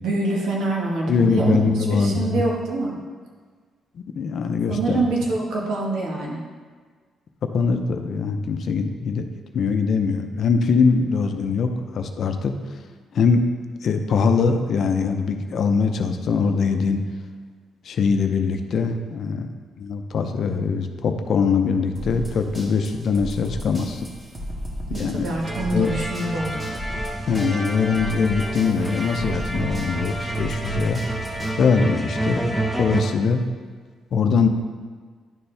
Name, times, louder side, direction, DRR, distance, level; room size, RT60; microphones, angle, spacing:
voice 1, 0.0-1.6 1.9-3.0 4.7-6.4 24.9-26.5, right 2 dB, 75° right, -2 dB, 1.5 m, -25 dB
voice 2, 1.1-2.4 4.0-5.0 7.4-9.3 9.5-12.8 13.1-13.5 13.8-17.0 17.8-24.1 24.9-25.2 25.7-25.9 27.3-31.0 31.6-32.5 32.8-33.4 34.1-34.5, left 5 dB, 60° left, 6 dB, 0.6 m, -22 dB
sound 1, 22.0-31.6, equal, 25° right, 1.8 m, -35 dB
sound 2, 25.4-33.0, right 2 dB, 10° right, 0.9 m, -29 dB
10.5 x 4.3 x 3.4 m, 1.5 s
cardioid pair, 90°, 0 cm